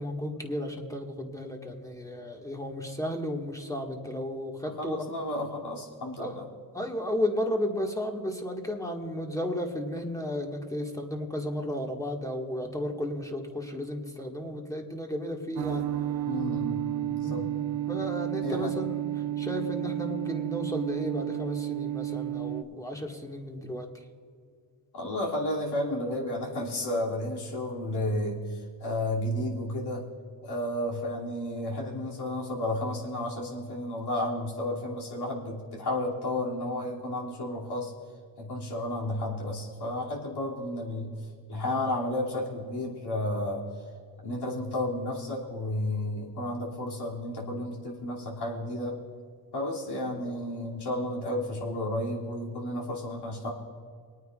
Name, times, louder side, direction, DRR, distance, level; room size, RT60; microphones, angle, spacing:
voice 1, 0.0-5.0 6.2-6.4 6.7-15.9 17.2-17.4 17.9-19.1 19.4-24.0, left 1 dB, 5° left, 1 dB, 1.9 m, -33 dB
voice 2, 4.8-6.4 16.3-17.5 18.4-18.7 24.9-30.0 30.4-37.9 38.4-41.1 41.5-43.6 44.2-49.0 49.5-53.5, left 1 dB, 60° left, -3 dB, 2.9 m, -32 dB
sound 1, 15.6-22.6, right 13 dB, 85° right, 0.7 m, -31 dB
25.5 x 9.3 x 2.5 m, 2.2 s
supercardioid pair, 65°, 45 cm